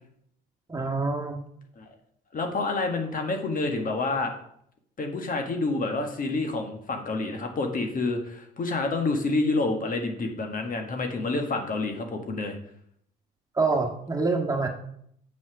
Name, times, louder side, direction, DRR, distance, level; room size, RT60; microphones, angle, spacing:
voice 1, 0.7-1.4 13.6-14.7, right 3 dB, 15° right, 2 dB, 1.7 m, -26 dB
voice 2, 2.3-4.3 5.0-12.6, left 3 dB, 45° left, 4 dB, 1.6 m, -28 dB
6.1 x 5.9 x 6.2 m, 0.69 s
supercardioid pair, 75°, 20 cm